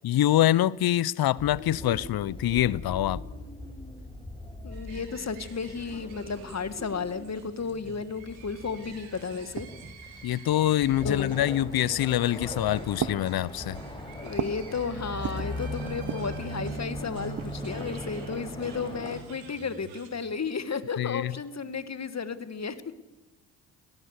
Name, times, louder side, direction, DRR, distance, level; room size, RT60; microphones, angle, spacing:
voice 1, 0.0-3.2 10.2-13.8 21.0-21.3, left 13 dB, 50° left, 0.7 m, -25 dB
sound 1, 1.4-19.2, equal, 10° left, 5.7 m, -40 dB
voice 2, 4.6-9.7 10.0-10.3 10.8-11.4 14.2-22.8, left 5 dB, 35° left, 1.9 m, -33 dB
sound 2, 4.7-20.1, right 5 dB, 75° right, 3.7 m, -50 dB
sound 3, 8.9-10.0 10.8-11.3 12.2-12.5 13.0-14.7 15.0-15.6 16.0-16.4 17.1-18.1, right 7 dB, 40° right, 1.2 m, -37 dB
26.5 x 17.0 x 6.7 m
hypercardioid pair, 45°, 46 cm